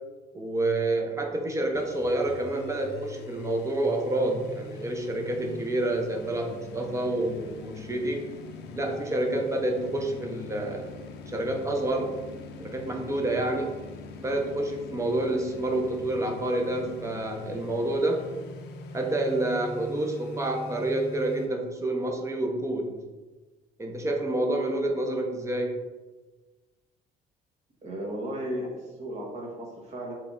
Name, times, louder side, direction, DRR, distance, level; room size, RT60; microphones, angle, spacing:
voice 1, 0.3-8.2 8.8-10.9 11.3-12.2 12.6-13.7 14.2-18.3 18.9-23.0 23.8-25.8, right 1 dB, 15° right, 2 dB, 0.6 m, -28 dB
sound 1, 1.7-21.5, left 3 dB, 80° left, 0.5 m, -43 dB
voice 2, 27.8-30.1, equal, 40° right, -2 dB, 1.2 m, -35 dB
3.3 x 3.1 x 3.7 m, 1.2 s
cardioid pair, 110°, 17 cm